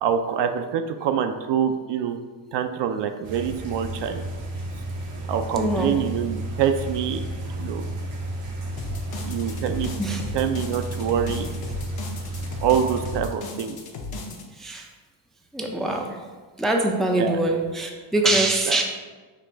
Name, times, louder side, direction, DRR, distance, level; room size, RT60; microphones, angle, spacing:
voice 1, 0.0-2.2 2.5-4.2 5.3-7.2 7.6-7.9 9.2-9.9 10.3-11.5 12.6-13.8 17.2-17.4 18.7-18.8, right 8 dB, 60° right, 7 dB, 0.5 m, -25 dB
sound 1, 3.2-13.2, right 1 dB, 85° right, 1.1 m, -32 dB
voice 2, 5.6-6.0 10.0-10.2 14.6-14.9 15.5-16.2 16.6-18.8, right 2 dB, ahead, 1 dB, 0.4 m, -23 dB
sound 2, 8.8-14.4, left 3 dB, 50° left, 0.9 m, -36 dB
5.9 x 2.4 x 3.4 m, 1.4 s
supercardioid pair, 75°, 48 cm